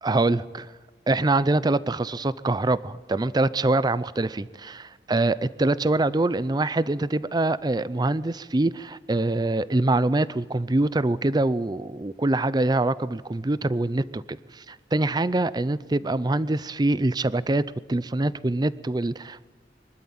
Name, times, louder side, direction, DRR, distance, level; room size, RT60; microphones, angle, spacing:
voice 1, 0.0-0.7 1.1-17.6 17.9-19.5, right 2 dB, 25° right, 17 dB, 0.5 m, -24 dB
24.0 x 12.5 x 8.8 m, 1.4 s
head